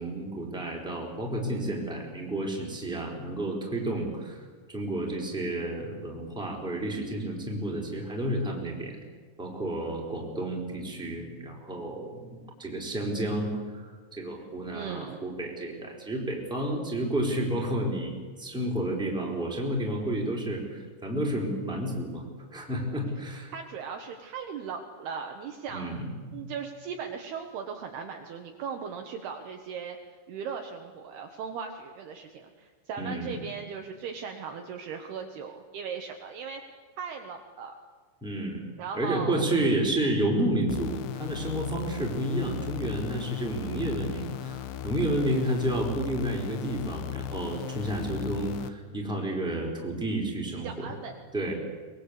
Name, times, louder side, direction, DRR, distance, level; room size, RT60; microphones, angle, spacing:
voice 1, 0.0-4.4 4.7-9.0 9.4-22.2 22.5-23.5 25.7-26.0 26.3-26.4 33.0-33.4 38.2-38.6 38.9-50.9 51.3-51.5, right 1 dB, ahead, -1 dB, 3.9 m, -31 dB
voice 2, 14.7-15.2 23.5-26.0 26.3-30.0 30.3-36.6 37.0-37.7 38.8-39.5 50.5-51.1, right 6 dB, 65° right, 4 dB, 2.9 m, -38 dB
sound 1, 40.7-48.7, left 11 dB, 75° left, 3.0 m, -37 dB
23.5 x 21.5 x 8.3 m, 1.5 s
omnidirectional pair, 5.5 m